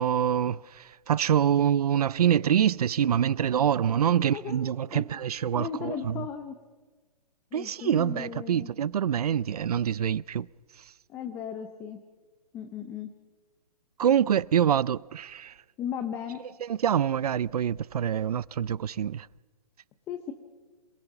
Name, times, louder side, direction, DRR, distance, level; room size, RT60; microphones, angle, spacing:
voice 1, 0.0-6.3 7.5-10.5 14.0-15.5 16.6-19.3, right 9 dB, 65° right, 0.5 m, -25 dB
voice 2, 4.3-5.0 5.5-6.6 7.5-8.7 11.1-12.0 12.5-13.1 15.8-16.4 20.1-20.3, left 8 dB, 10° left, 0.6 m, -36 dB
27.5 x 18.0 x 6.0 m
hypercardioid pair, 165°, 21 cm